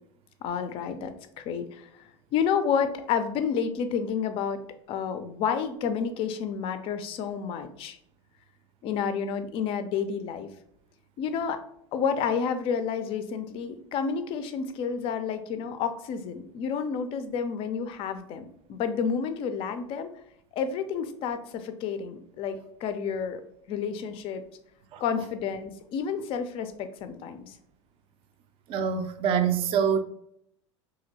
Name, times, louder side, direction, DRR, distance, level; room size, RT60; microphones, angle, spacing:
voice 1, 0.4-1.9 2.3-4.6 4.9-8.0 8.8-10.5 11.2-11.6 11.9-20.1 20.5-23.4 23.7-24.4 25.0-27.5, left 6 dB, 35° left, 0.4 m, -30 dB
voice 2, 28.7-30.0, right 7 dB, 35° right, 0.4 m, -25 dB
2.8 x 2.6 x 2.7 m
figure-of-eight pair, 80°, 16 cm